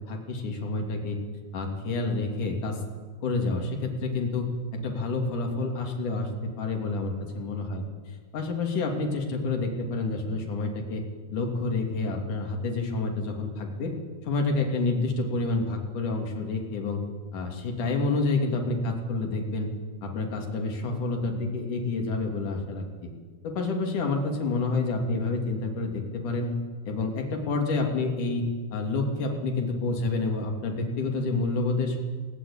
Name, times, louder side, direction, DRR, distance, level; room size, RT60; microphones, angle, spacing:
voice 1, 0.1-1.2 1.5-2.8 3.2-7.8 8.3-11.0 11.3-13.9 14.2-17.0 17.3-19.7 20.0-23.1 23.4-26.5 26.9-28.5 28.7-32.0, left 3 dB, 50° left, 2 dB, 4.0 m, -28 dB
20.0 x 18.5 x 8.8 m, 1.5 s
omnidirectional pair, 4.9 m